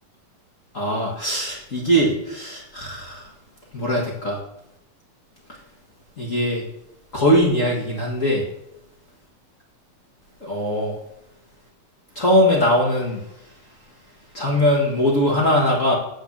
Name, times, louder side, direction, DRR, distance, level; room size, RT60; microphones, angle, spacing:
voice 1, 0.7-3.3 3.7-4.4 6.2-6.6 7.1-8.4 10.4-10.9 12.1-13.2 14.3-16.0, equal, 55° left, -3 dB, 0.8 m, -21 dB
7.4 x 7.0 x 7.3 m, 0.84 s
omnidirectional pair, 4.2 m